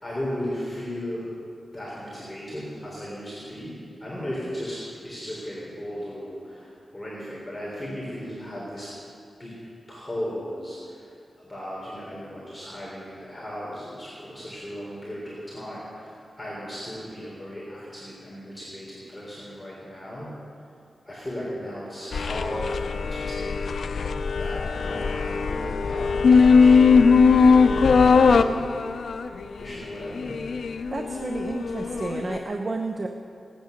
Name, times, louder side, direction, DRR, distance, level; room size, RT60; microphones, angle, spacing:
voice 1, 0.0-1.3 1.7-8.9 9.4-9.6 9.9-11.1 11.4-20.4 21.1-27.0 27.5-28.6 29.6-30.5, equal, 15° left, -7 dB, 3.7 m, -36 dB
sound 1, 22.1-32.4, left 5 dB, 85° left, 0.5 m, -20 dB
voice 2, 30.9-33.1, right 2 dB, 40° right, 3 dB, 0.8 m, -31 dB
17.5 x 9.5 x 6.6 m, 2.5 s
wide cardioid pair, 110°, 0 cm